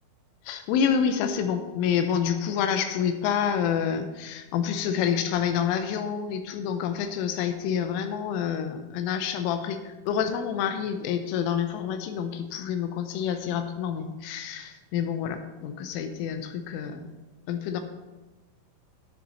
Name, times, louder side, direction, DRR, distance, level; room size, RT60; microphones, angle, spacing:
voice 1, 0.5-17.0 17.5-17.8, left 8 dB, 85° left, 6 dB, 3.4 m, -28 dB
10.5 x 10.0 x 4.1 m, 1.2 s
omnidirectional pair, 5.7 m